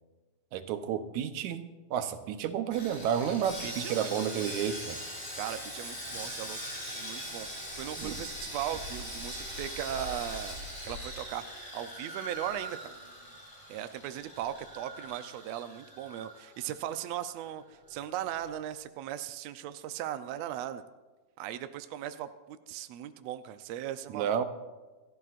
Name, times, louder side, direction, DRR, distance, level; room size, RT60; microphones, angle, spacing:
voice 1, 0.5-5.0 8.0-8.2 24.1-24.4, right 8 dB, 70° right, 8 dB, 2.0 m, -31 dB
Sawing, 2.7-17.0 17.2-17.4 17.9-18.0, equal, 10° left, 6.1 m, -41 dB
voice 2, 3.6-4.4 5.3-6.6 6.9-7.5 7.8-10.6 10.8-12.9 13.7-17.6 17.9-20.8 21.4-24.4, right 11 dB, 90° right, 10 dB, 1.5 m, -38 dB
27.5 x 13.5 x 2.5 m, 1.2 s
omnidirectional pair, 3.9 m